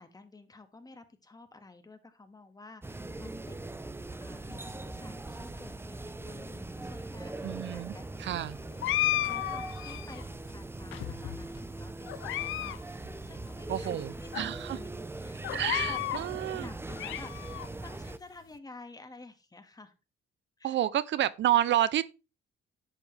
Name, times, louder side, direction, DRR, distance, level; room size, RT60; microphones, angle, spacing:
voice 1, 0.0-8.2 8.7-19.9 20.6-20.8, left 3 dB, 20° left, 1.8 m, -51 dB
sound 1, 2.8-18.2, right 2 dB, 10° right, 0.7 m, -41 dB
voice 2, 7.4-8.6 13.7-14.8 15.5-16.7 20.6-22.0, right 12 dB, 65° right, 0.6 m, -29 dB
sound 2, 8.8-10.2 10.9-11.6 12.1-12.8 13.1-13.2 13.8-13.9 14.3-14.4 15.4-16.2 16.7-17.7, left 14 dB, 80° left, 0.6 m, -33 dB
11.0 x 7.6 x 3.4 m
cardioid pair, 90°, 20 cm